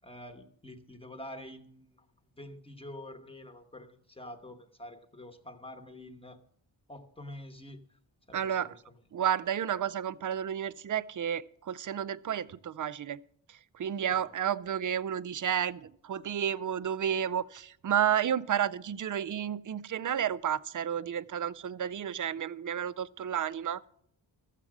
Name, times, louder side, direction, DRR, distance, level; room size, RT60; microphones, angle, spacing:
voice 1, 0.0-1.9 2.4-6.4 6.9-7.8 8.3-8.7, left 1 dB, 10° left, 1.0 m, -47 dB
voice 2, 8.3-8.8 9.1-13.2 13.5-23.9, right 9 dB, 45° right, 0.4 m, -31 dB
14.0 x 7.4 x 6.0 m
wide cardioid pair, 155°, 46 cm